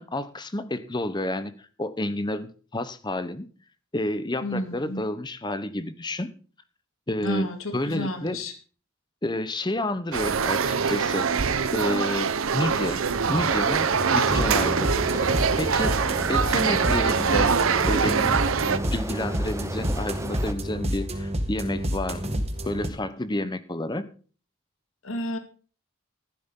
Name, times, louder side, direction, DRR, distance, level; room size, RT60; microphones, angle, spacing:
voice 1, 0.0-1.5 1.8-3.5 3.9-6.3 7.1-8.4 9.2-11.3 11.7-13.0 13.3-15.2 15.6-16.0 16.3-17.5 17.9-18.4 18.9-24.1, left 1 dB, 20° left, 12 dB, 0.9 m, -30 dB
voice 2, 4.4-5.0 7.2-8.5 25.0-25.4, equal, 70° left, 6 dB, 2.2 m, -31 dB
sound 1, 10.1-18.8, right 6 dB, 70° right, 0.7 m, -24 dB
sound 2, 13.2-20.5, right 1 dB, 15° right, 0.7 m, -34 dB
sound 3, 14.3-22.9, equal, 30° right, 1.7 m, -30 dB
14.0 x 12.0 x 3.8 m, 0.39 s
head